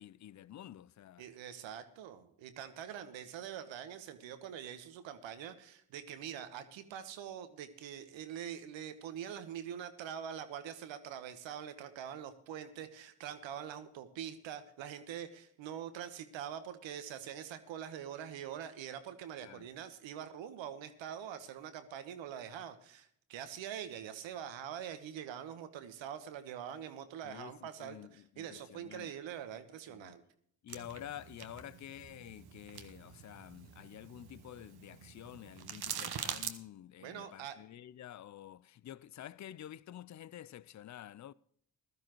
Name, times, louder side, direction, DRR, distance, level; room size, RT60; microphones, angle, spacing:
voice 1, 0.0-1.2 19.4-19.7 27.2-29.1 29.9-30.2 30.6-41.3, left 11 dB, 40° left, 0.5 m, -49 dB
voice 2, 1.2-30.2 37.0-37.6, right 9 dB, 75° right, 1.3 m, -44 dB
sound 1, 30.7-36.5, right 8 dB, 55° right, 1.1 m, -45 dB
16.0 x 12.5 x 3.0 m
hypercardioid pair, 40°, 46 cm